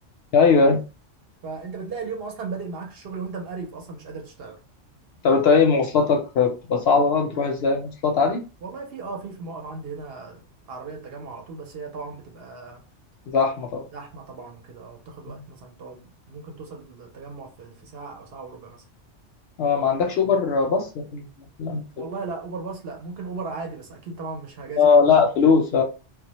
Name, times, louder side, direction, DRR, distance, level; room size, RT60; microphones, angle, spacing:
voice 1, 0.3-0.8 5.2-8.4 13.3-13.8 15.3-15.5 19.6-21.3 21.6-22.1 24.8-25.8, left 5 dB, 65° left, 0.7 m, -20 dB
voice 2, 1.4-4.6 8.6-12.8 13.9-18.8 22.0-24.9 25.4-25.5, right 4 dB, 60° right, 0.7 m, -36 dB
2.2 x 2.0 x 2.8 m
omnidirectional pair, 1.3 m